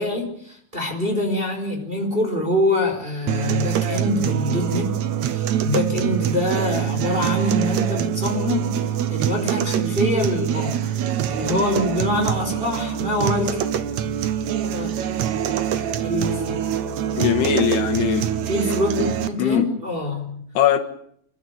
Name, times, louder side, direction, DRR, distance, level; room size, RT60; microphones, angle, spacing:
voice 1, 0.0-4.9 5.2-8.8 9.1-10.9 11.3-13.6 14.7-14.9 16.0-16.6 17.9-20.4, left 1 dB, 15° right, 4.4 m, -25 dB
sound 1, 3.3-19.3, right 10 dB, 70° right, 1.7 m, -24 dB
voice 2, 17.1-18.3 19.4-19.7 20.6-20.8, left 10 dB, 85° left, 3.7 m, -20 dB
29.5 x 13.0 x 9.1 m
omnidirectional pair, 4.7 m